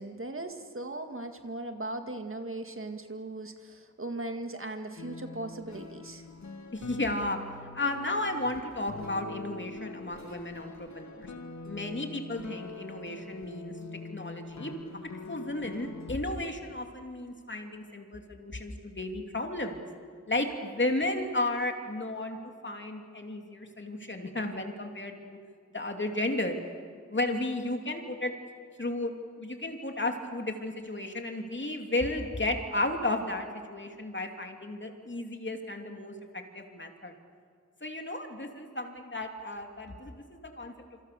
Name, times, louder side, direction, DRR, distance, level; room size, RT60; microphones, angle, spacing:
voice 1, 0.0-6.3, right 2 dB, 45° right, 6 dB, 2.0 m, -38 dB
sound 1, 5.0-16.2, left 4 dB, 70° left, 1.8 m, -44 dB
voice 2, 6.7-7.4 7.7-11.3 11.6-13.7 14.1-14.7 15.3-19.8 20.3-22.4 22.6-25.4 25.7-26.6 27.1-28.3 28.8-37.1 37.8-40.7, left 2 dB, 40° left, 4 dB, 2.9 m, -33 dB
27.0 x 26.0 x 7.0 m, 2.1 s
wide cardioid pair, 70°, 29 cm